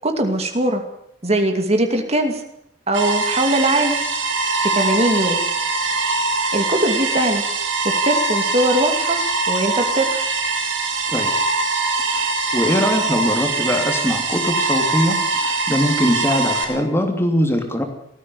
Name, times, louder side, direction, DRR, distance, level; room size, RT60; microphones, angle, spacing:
voice 1, 0.0-0.8 1.2-2.4 2.9-4.0 4.6-5.4 6.5-7.4 7.8-9.2 9.5-10.2, right 1 dB, 35° right, 5 dB, 2.5 m, -20 dB
sound 1, 2.9-16.6, right 3 dB, 80° right, 6.1 m, -22 dB
voice 2, 12.5-17.8, equal, 15° left, 5 dB, 3.0 m, -21 dB
19.0 x 14.5 x 9.7 m, 0.77 s
head